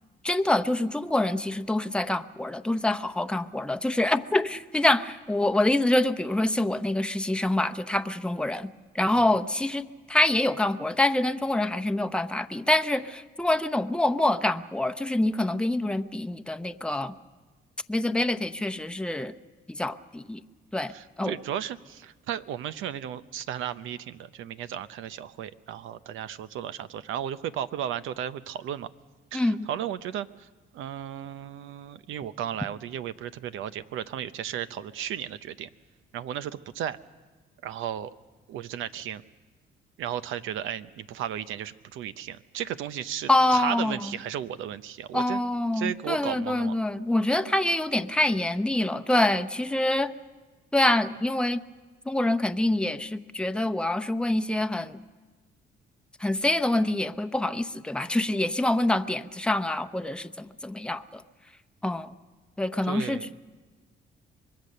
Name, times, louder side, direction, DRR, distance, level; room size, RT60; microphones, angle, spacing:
voice 1, 0.2-17.1 17.9-19.3 19.7-20.4 20.7-20.9 21.2-21.4 29.3-29.7 43.3-44.0 45.1-50.1 50.7-51.6 52.1-55.0 56.2-61.2 61.8-62.1 62.6-63.4, left 1 dB, 5° left, 9 dB, 0.8 m, -26 dB
voice 2, 20.9-28.9 29.3-30.5 30.7-35.7 36.1-37.0 37.6-38.1 38.5-39.2 40.0-45.4 45.7-46.7 62.8-63.3, right 10 dB, 85° right, 13 dB, 0.8 m, -34 dB
25.0 x 21.0 x 6.7 m, 1.4 s
cardioid pair, 90°, 20 cm